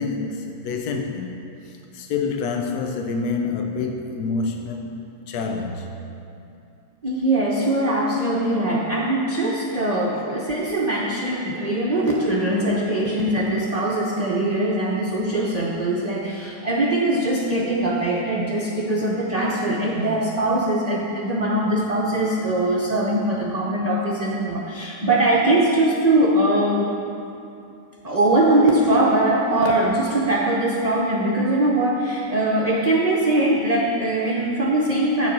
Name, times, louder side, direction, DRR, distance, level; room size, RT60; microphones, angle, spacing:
voice 1, 0.0-1.4 1.6-4.9 5.3-6.0 10.1-10.2, left 4 dB, 85° left, 4 dB, 1.2 m, -27 dB
voice 2, 7.0-26.9 28.0-35.3, right 1 dB, 35° right, -4 dB, 0.6 m, -21 dB
7.9 x 7.3 x 5.2 m, 2.7 s
omnidirectional pair, 1.6 m